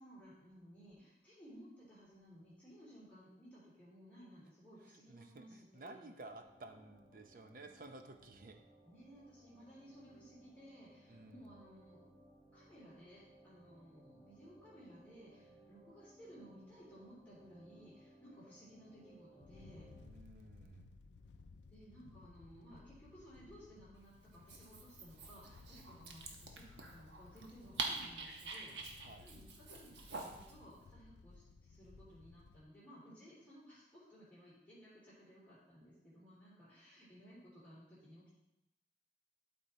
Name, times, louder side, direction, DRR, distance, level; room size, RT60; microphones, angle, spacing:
voice 1, 0.0-6.1 8.8-12.0 12.5-19.8 21.7-26.6 26.9-38.3, equal, 10° left, -10 dB, 3.0 m, -58 dB
voice 2, 4.9-8.6 11.1-11.5 20.0-20.9 29.0-29.3, right 2 dB, 50° right, 6 dB, 0.7 m, -54 dB
sound 1, 6.3-20.1, right 1 dB, 10° right, 1.3 m, -64 dB
sound 2, 19.4-32.6, left 4 dB, 80° left, 0.4 m, -60 dB
Dog, 24.3-30.6, right 3 dB, 80° right, 1.1 m, -46 dB
12.0 x 4.3 x 4.3 m, 0.89 s
head